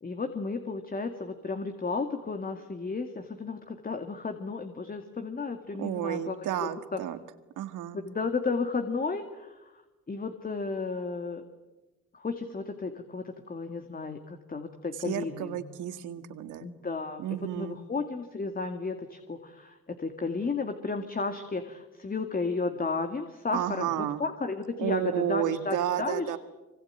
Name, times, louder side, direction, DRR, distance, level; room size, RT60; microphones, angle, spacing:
voice 1, 0.0-6.4 6.6-7.0 7.9-9.8 10.1-11.4 12.1-15.6 16.6-26.3, left 4 dB, 30° left, 7 dB, 2.2 m, -33 dB
voice 2, 5.8-7.2 7.6-8.0 15.0-16.7 17.2-17.8 23.5-24.2 24.8-26.4, right 11 dB, 85° right, 11 dB, 1.9 m, -31 dB
25.5 x 25.0 x 9.1 m, 1.1 s
cardioid pair, 90°, 30 cm